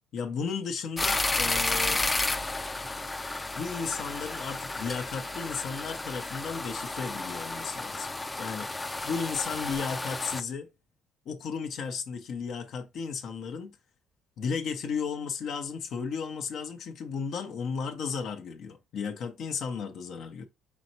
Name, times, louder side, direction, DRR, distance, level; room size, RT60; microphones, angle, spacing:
voice 1, 0.1-2.1 3.6-8.1 8.4-8.7 9.0-10.7 11.3-13.7 14.4-20.4, left 5 dB, 60° left, 0.7 m, -34 dB
sound 1, 1.0-10.4, left 2 dB, 20° left, 0.4 m, -32 dB
4.1 x 3.2 x 2.8 m
supercardioid pair, 75°, 0 cm